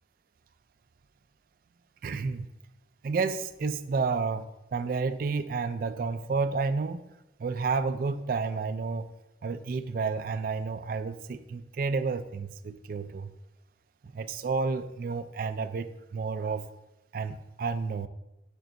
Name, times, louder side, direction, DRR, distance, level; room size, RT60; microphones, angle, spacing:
voice 1, 2.0-2.5 3.0-7.0 7.4-9.1 9.4-13.3 14.0-16.6 17.1-18.1, right 4 dB, 50° right, 10 dB, 0.3 m, -31 dB
9.0 x 6.9 x 2.6 m, 0.93 s
head